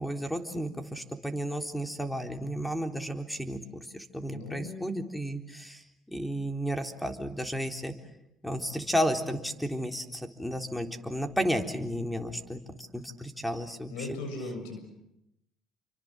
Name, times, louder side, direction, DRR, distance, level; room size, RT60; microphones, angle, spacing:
voice 1, 0.0-7.9 8.4-14.2, equal, 5° left, 6 dB, 3.7 m, -33 dB
voice 2, 4.3-4.9 13.9-14.8, left 2 dB, 90° left, 7 dB, 6.9 m, -38 dB
29.5 x 24.5 x 7.9 m, 0.83 s
supercardioid pair, 85°, 0 cm